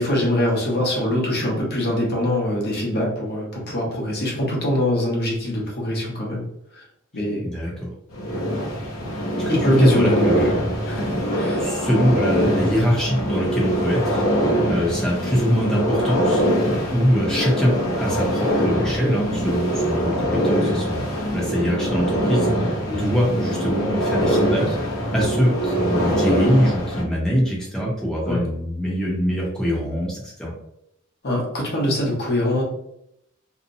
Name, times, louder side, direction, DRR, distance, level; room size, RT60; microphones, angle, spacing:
voice 1, 0.0-6.4 6.7-6.8 7.1-7.4 8.3-8.4 9.0-9.1 9.5-10.5 10.9-11.7 14.5-14.6 22.9-23.1 28.3-28.4 31.2-32.6, left 1 dB, 50° left, -2 dB, 0.9 m, -23 dB
voice 2, 7.5-7.9 9.5-10.5 11.6-14.2 14.7-16.4 16.9-30.5, equal, 5° left, -5 dB, 0.7 m, -23 dB
sound 1, 8.1-27.0, equal, 80° left, 0.8 m, -23 dB
2.7 x 2.1 x 2.6 m, 0.79 s
head